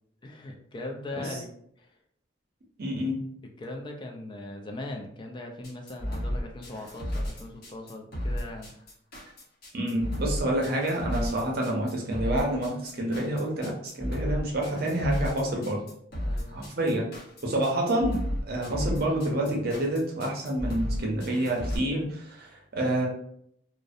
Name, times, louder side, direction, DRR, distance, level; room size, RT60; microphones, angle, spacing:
voice 1, 0.2-1.5 1.8-1.9 3.6-8.7 16.2-16.6, left 2 dB, 25° left, 2 dB, 0.3 m, -39 dB
voice 2, 2.8-3.2 9.7-15.8 16.5-17.1 17.4-23.1, right 1 dB, 50° right, 0 dB, 0.6 m, -28 dB
sound 1, 5.6-21.8, equal, 50° left, 0.8 m, -33 dB
2.5 x 2.0 x 2.4 m, 0.70 s
head